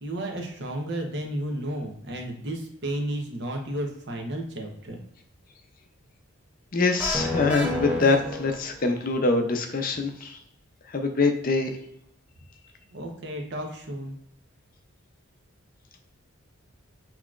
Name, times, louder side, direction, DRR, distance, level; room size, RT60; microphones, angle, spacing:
voice 1, 0.0-5.0 12.9-14.2, right 1 dB, 55° right, 2 dB, 0.9 m, -32 dB
voice 2, 6.7-10.4 10.9-11.8, left 3 dB, 40° left, 5 dB, 0.5 m, -24 dB
sound 1, 7.0-9.0, left 1 dB, 5° right, 0.5 m, -30 dB
6.0 x 2.9 x 2.4 m, 0.74 s
head